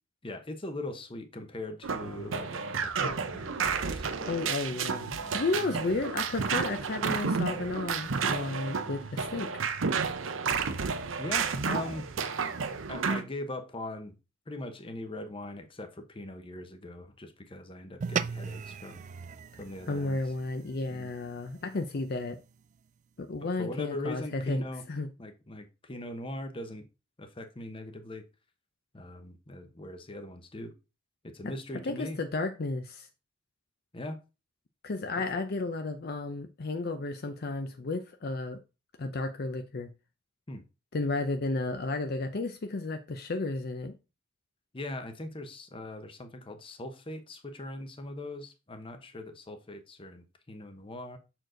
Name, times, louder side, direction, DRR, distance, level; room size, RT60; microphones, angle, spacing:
voice 1, 0.2-4.3 5.2-5.6 11.2-12.1 12.9-14.1 14.5-19.0 19.6-20.2 20.9-21.1 23.4-24.8 25.2-26.8 27.2-28.2 28.9-30.7 31.2-32.2 33.9-34.2 40.5-40.6 44.7-51.2, left 2 dB, 25° left, 0.8 m, -40 dB
sound 1, 1.8-13.2, right 5 dB, 85° right, 0.7 m, -31 dB
voice 2, 4.3-9.5 19.9-22.4 23.2-24.6 24.9-25.1 31.9-33.1 34.8-38.6 39.0-39.9 40.9-43.9, left 3 dB, 55° left, 0.6 m, -33 dB
sound 2, 18.0-22.6, right 6 dB, 40° right, 0.3 m, -38 dB
6.3 x 4.5 x 3.8 m
head